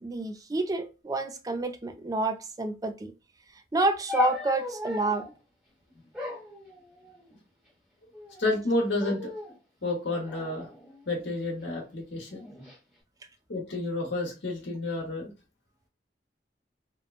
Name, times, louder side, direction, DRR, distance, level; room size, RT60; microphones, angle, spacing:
voice 1, 0.0-3.1 3.7-5.3, right 2 dB, 20° right, 0.4 m, -29 dB
sound 1, 4.1-5.3 6.1-7.4 8.1-8.6 9.0-9.6 10.2-11.5 12.3-12.8, left 3 dB, 5° right, 0.9 m, -36 dB
voice 2, 8.4-9.3 9.8-10.7 11.1-12.5 13.5-15.3, left 2 dB, 90° left, 1.0 m, -30 dB
2.9 x 2.1 x 2.4 m
head